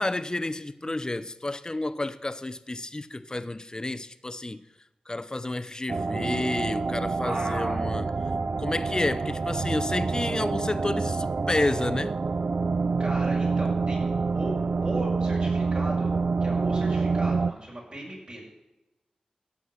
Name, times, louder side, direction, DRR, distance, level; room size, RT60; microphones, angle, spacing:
voice 1, 0.0-4.6 5.1-8.1 8.6-12.2, left 2 dB, 30° left, 0.7 m, -30 dB
sound 1, 5.9-17.5, right 4 dB, 70° right, 0.5 m, -27 dB
voice 2, 7.2-7.9 13.0-16.1 16.4-18.4, right 1 dB, 50° right, 6.3 m, -37 dB
15.5 x 6.1 x 8.1 m
cardioid pair, 50°, 3 cm